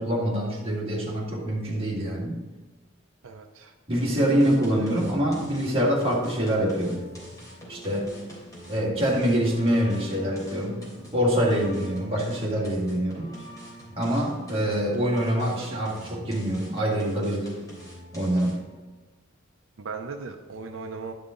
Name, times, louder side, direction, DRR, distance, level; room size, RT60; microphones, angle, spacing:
voice 1, 0.0-2.4 3.9-7.0 7.7-8.3 8.7-10.8 11.1-13.3 14.0-17.5 18.1-18.6, equal, 30° right, -4 dB, 2.1 m, -25 dB
voice 2, 3.2-3.7 19.8-21.1, right 4 dB, 80° right, 4 dB, 0.6 m, -37 dB
sound 1, 3.9-18.7, right 1 dB, 20° left, 3.0 m, -44 dB
11.0 x 5.5 x 3.8 m, 1.2 s
head